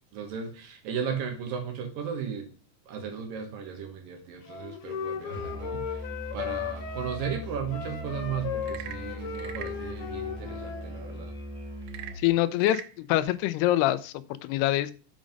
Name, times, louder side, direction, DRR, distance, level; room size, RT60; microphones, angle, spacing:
voice 1, 0.1-2.5 2.9-11.3, right 7 dB, 65° right, 2.7 m, -36 dB
Wind instrument woodwind instrument, 4.5-10.8, left 7 dB, 70° left, 2.2 m, -36 dB
Musical instrument, 5.3-12.3, equal, 20° left, 2.6 m, -40 dB
Frog / Percussion / Wood, 8.5-9.8 11.8-13.0, right 12 dB, 90° right, 2.7 m, -41 dB
voice 2, 12.2-14.1 14.4-14.9, left 14 dB, 85° left, 2.5 m, -25 dB
7.4 x 5.1 x 5.1 m
omnidirectional pair, 4.7 m